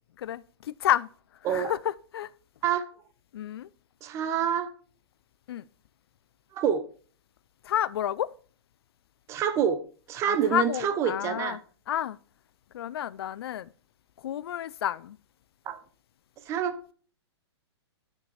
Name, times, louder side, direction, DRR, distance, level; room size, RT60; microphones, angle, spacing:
voice 1, 0.2-1.1 1.5-1.8 2.1-2.3 3.3-3.7 5.5-5.6 7.6-8.3 10.3-11.6 11.9-12.2 12.7-13.7 14.2-15.2, left 11 dB, 60° left, 0.4 m, -30 dB
voice 2, 4.0-4.7 6.5-6.8 9.3-9.8 10.1-11.6 15.7-15.8 16.5-16.8, right 8 dB, 20° right, 0.7 m, -27 dB
10.5 x 7.0 x 3.2 m
hypercardioid pair, 155°, 15 cm